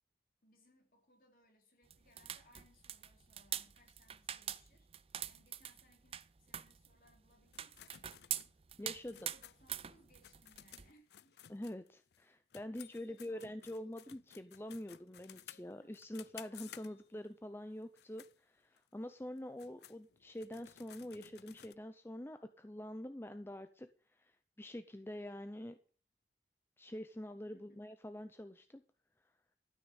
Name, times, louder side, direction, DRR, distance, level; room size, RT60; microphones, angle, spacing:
voice 1, 0.4-4.9 5.2-8.0 8.8-11.5 12.9-14.0 14.3-14.4 15.5-15.9 18.7-18.8 27.5-27.8, left 1 dB, 50° left, 2 dB, 3.5 m, -69 dB
sound 1, 1.9-10.9, right 10 dB, 35° right, 0.5 m, -44 dB
sound 2, 7.5-12.2 12.5-17.3 17.8-18.3 18.8-18.9 19.4-21.7, left 11 dB, 70° left, 0.5 m, -57 dB
voice 2, 8.8-9.3 11.5-25.8 26.8-28.8, left 1 dB, 15° left, 10 dB, 0.6 m, -46 dB
13.0 x 6.1 x 8.1 m, 0.40 s
head